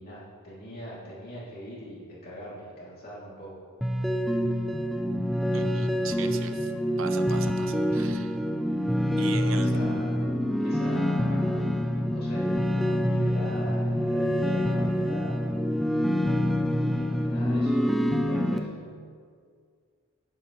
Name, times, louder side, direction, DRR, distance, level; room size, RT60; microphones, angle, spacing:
voice 1, 0.0-3.6 8.9-10.3 10.6-15.5 16.9-17.8 18.1-18.7, equal, 45° left, -7 dB, 2.8 m, -42 dB
sound 1, 3.8-18.6, equal, ahead, 0.5 m, -26 dB
voice 2, 5.3-6.7 7.0-8.4 9.2-9.7, right 6 dB, 65° right, 8 dB, 0.8 m, -40 dB
17.5 x 9.3 x 3.2 m, 2.1 s
head